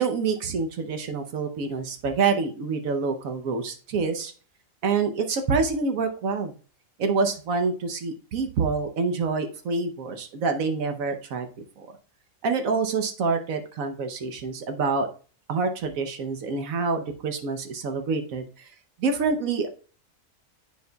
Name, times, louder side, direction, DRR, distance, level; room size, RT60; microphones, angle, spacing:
voice 1, 0.0-4.3 4.8-6.6 7.0-11.5 11.8-11.9 12.4-15.1 15.5-18.4 19.0-19.7, right 4 dB, 75° right, 6 dB, 1.2 m, -26 dB
9.3 x 4.7 x 2.2 m, 0.38 s
omnidirectional pair, 1.4 m